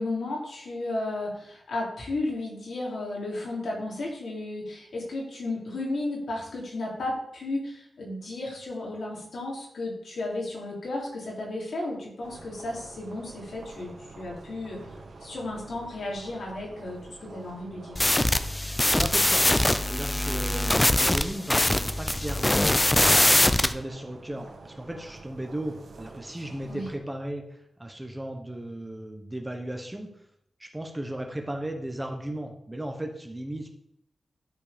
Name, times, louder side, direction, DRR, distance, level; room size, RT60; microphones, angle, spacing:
voice 1, 0.0-14.8 15.2-18.0 26.7-26.9, left 2 dB, 85° left, -3 dB, 3.3 m, -34 dB
sound 1, 12.2-27.0, right 3 dB, 85° right, 1.8 m, -47 dB
sound 2, 18.0-23.7, left 1 dB, 15° left, 0.5 m, -22 dB
voice 2, 18.9-19.5 19.8-23.0 23.6-30.2 30.6-33.7, right 1 dB, 15° right, 3 dB, 1.1 m, -36 dB
12.0 x 4.6 x 5.2 m, 0.73 s
wide cardioid pair, 135°, 0 cm